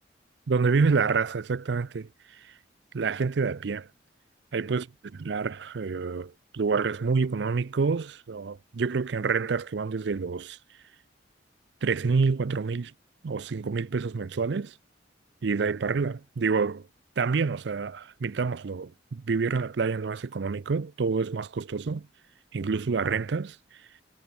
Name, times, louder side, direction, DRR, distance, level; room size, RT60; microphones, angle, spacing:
voice 1, 0.5-2.1 2.9-3.9 4.5-4.8 5.2-10.6 11.8-12.9 13.2-14.7 15.4-16.9 17.2-22.1 22.5-23.6, right 4 dB, 70° right, 0.5 m, -27 dB
head